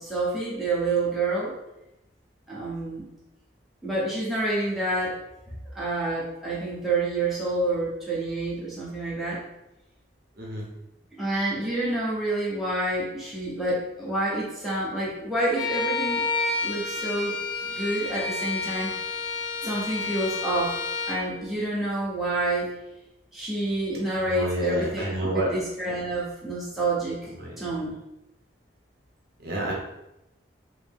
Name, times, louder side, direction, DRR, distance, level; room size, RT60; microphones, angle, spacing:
voice 1, 0.0-1.5 2.5-3.0 3.8-5.2 5.5-9.4 11.2-16.3 16.6-17.4 17.7-18.9 19.6-20.8 21.1-22.7 23.3-27.2 27.6-28.0, right 2 dB, ahead, -8 dB, 0.8 m, -28 dB
Bowed string instrument, 15.6-21.3, left 4 dB, 80° left, 0.6 m, -30 dB
voice 2, 24.2-25.5 27.4-27.6 29.4-29.7, right 1 dB, 55° right, -3 dB, 0.9 m, -29 dB
4.6 x 2.0 x 3.5 m, 0.91 s
head